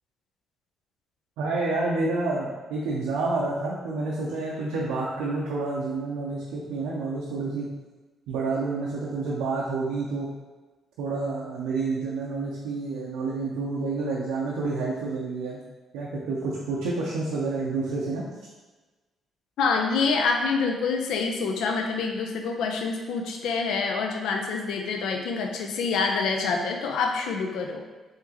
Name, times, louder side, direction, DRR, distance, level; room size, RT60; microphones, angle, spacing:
voice 1, 1.4-7.7 8.3-10.3 11.0-15.6 15.9-18.3, right 3 dB, 90° right, -4 dB, 0.5 m, -29 dB
voice 2, 19.6-27.8, left 4 dB, 80° left, 3 dB, 0.4 m, -26 dB
3.6 x 2.8 x 2.8 m, 1.2 s
supercardioid pair, 60°, 0 cm